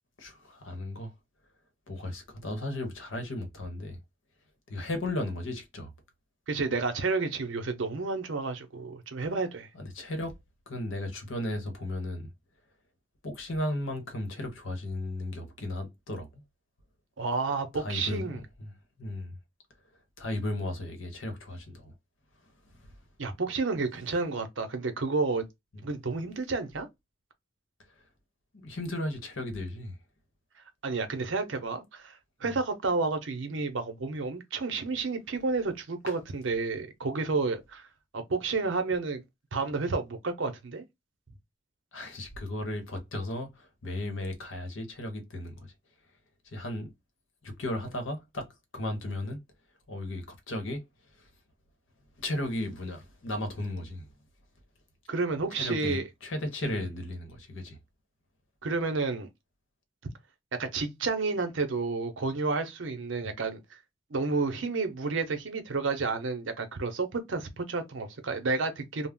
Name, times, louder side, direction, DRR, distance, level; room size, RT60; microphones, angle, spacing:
voice 1, 0.2-1.1 1.9-4.0 4.7-5.9 9.7-10.3 10.7-12.3 13.2-16.4 17.7-19.4 20.2-21.9 22.4-22.9 25.7-25.8 28.5-30.0 32.4-32.5 36.1-36.2 41.9-45.7 46.4-46.9 47.4-48.5 48.7-49.4 49.9-50.8 51.1-51.3 52.2-54.1 55.5-57.8 63.2-63.3, left 1 dB, 85° left, 0.9 m, -35 dB
voice 2, 6.5-9.7 17.2-18.4 23.2-25.5 25.8-26.9 30.8-37.9 38.1-39.2 39.5-40.8 55.1-56.1 56.6-56.8 58.6-59.3 60.6-63.8 64.1-69.1, right 3 dB, 80° right, 0.7 m, -31 dB
2.3 x 2.0 x 3.5 m
head